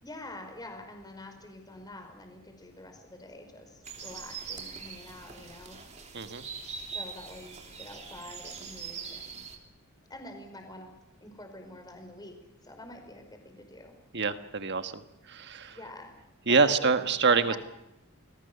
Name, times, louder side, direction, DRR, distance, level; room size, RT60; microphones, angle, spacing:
voice 1, 0.0-5.8 6.9-9.4 10.1-12.4 12.6-13.9 15.7-16.2 16.5-16.9 17.3-17.6, left 1 dB, 20° left, 5 dB, 5.0 m, -46 dB
sound 1, 3.8-9.6, right 5 dB, 30° right, 3.3 m, -42 dB
voice 2, 14.1-15.0 15.3-15.8 16.5-17.6, right 4 dB, 50° right, 9 dB, 1.5 m, -25 dB
29.0 x 21.0 x 7.0 m, 0.86 s
head